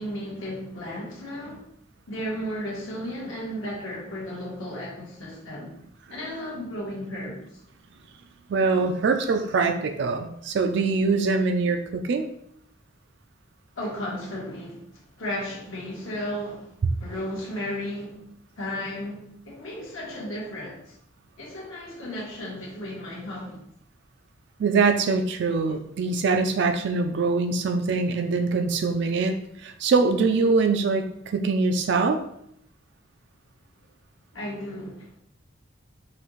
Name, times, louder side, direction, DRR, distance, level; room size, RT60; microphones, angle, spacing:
voice 1, 0.0-1.6 2.1-5.7 6.1-7.6 13.7-16.7 17.0-18.2 18.6-21.0 21.4-23.6 34.3-35.1, left 1 dB, 80° left, -4 dB, 1.6 m, -34 dB
voice 2, 8.5-12.3 24.6-32.2, right 4 dB, 60° right, 6 dB, 0.3 m, -23 dB
5.6 x 2.4 x 3.1 m, 0.74 s
head